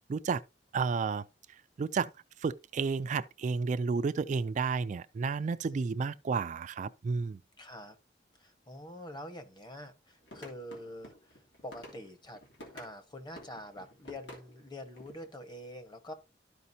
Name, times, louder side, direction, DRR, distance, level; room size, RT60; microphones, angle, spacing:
voice 1, 0.1-0.4 0.7-1.3 1.8-2.1 2.4-7.4, right 5 dB, 45° right, 0.3 m, -31 dB
voice 2, 5.6-6.0 7.6-8.0 8.4-12.4 12.7-16.1, left 1 dB, 25° left, 1.2 m, -46 dB
sound 1, 10.2-12.9 13.4-15.3, equal, 85° left, 2.9 m, -50 dB
13.0 x 5.1 x 2.7 m
head